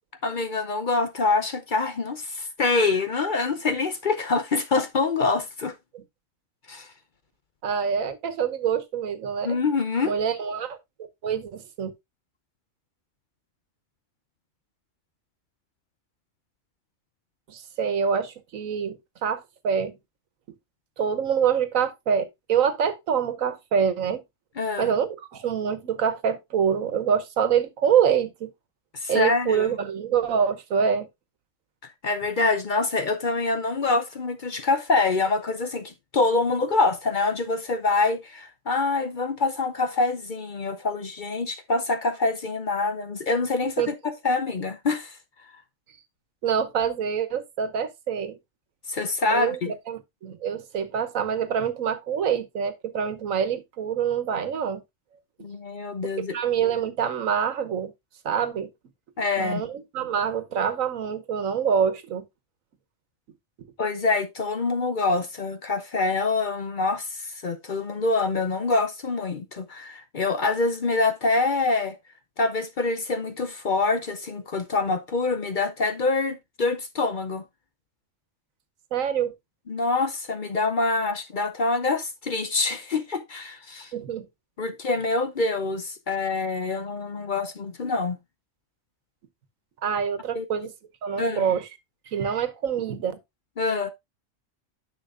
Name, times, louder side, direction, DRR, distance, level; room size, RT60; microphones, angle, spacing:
voice 1, 0.2-5.7 6.7-6.9 9.4-10.1 24.6-24.9 28.9-29.7 31.8-45.2 48.9-49.7 55.4-56.4 59.2-59.6 63.8-72.0 72.4-77.4 79.7-83.9 84.6-88.2 90.3-90.4 91.2-91.5 93.6-93.9, left 3 dB, 45° left, 0.7 m, -25 dB
voice 2, 7.6-9.6 10.0-10.8 11.2-11.9 17.5-19.9 21.0-24.2 24.8-28.5 29.1-31.1 43.6-43.9 46.4-48.4 49.3-54.8 56.3-57.9 58.2-58.7 59.4-62.2 78.9-79.3 83.9-84.3 89.8-90.7 91.0-91.7 92.1-93.1, right 7 dB, 90° right, 1.4 m, -26 dB
10.0 x 6.3 x 2.5 m
omnidirectional pair, 1.3 m